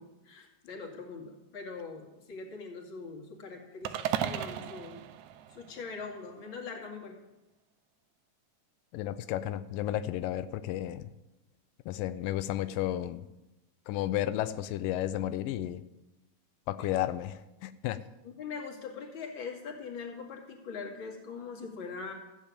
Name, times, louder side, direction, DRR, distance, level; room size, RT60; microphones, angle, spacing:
voice 1, 0.0-5.0 5.5-7.2 16.8-16.9 18.2-22.1, left 5 dB, 40° left, 1 dB, 2.8 m, -42 dB
sound 1, 3.8-6.2, right 10 dB, 75° right, 2.0 m, -35 dB
voice 2, 8.9-11.1 11.9-13.2 13.9-15.8 16.7-18.0, left 13 dB, 90° left, 13 dB, 2.3 m, -32 dB
14.0 x 8.7 x 8.5 m, 0.98 s
omnidirectional pair, 3.8 m